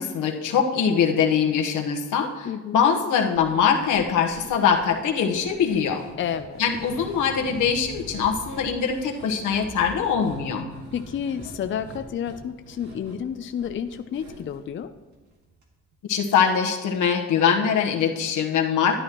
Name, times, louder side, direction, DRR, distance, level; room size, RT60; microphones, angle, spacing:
voice 1, 0.0-2.5 2.7-6.0 6.6-10.7 16.1-19.0, left 7 dB, 85° left, 3 dB, 1.2 m, -22 dB
voice 2, 2.4-2.8 6.2-6.6 10.9-14.9, left 8 dB, 40° left, 9 dB, 0.5 m, -30 dB
sound 1, 3.4-15.6 15.9-16.0 16.4-16.5, right 2 dB, 70° right, 2.1 m, -44 dB
12.0 x 10.5 x 3.0 m, 1.3 s
cardioid pair, 90°, 30 cm